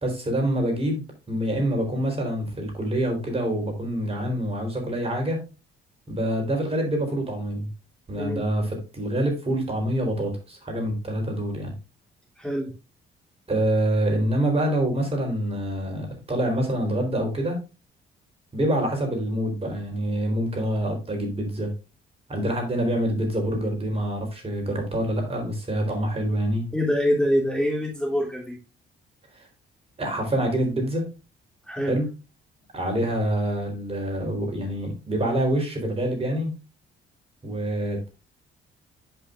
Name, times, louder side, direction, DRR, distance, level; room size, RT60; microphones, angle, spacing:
voice 1, 0.0-5.4 6.1-7.7 8.1-11.7 13.5-17.6 18.5-21.7 22.3-26.7 29.4-29.5 30.0-31.0 31.8-32.1 32.7-36.5 37.4-38.1, right 1 dB, 30° right, 2 dB, 3.8 m, -26 dB
voice 2, 12.4-12.7 26.7-28.6 31.7-32.0, equal, 5° left, -2 dB, 2.9 m, -25 dB
9.9 x 5.7 x 2.5 m, 0.29 s
cardioid pair, 90°, 20 cm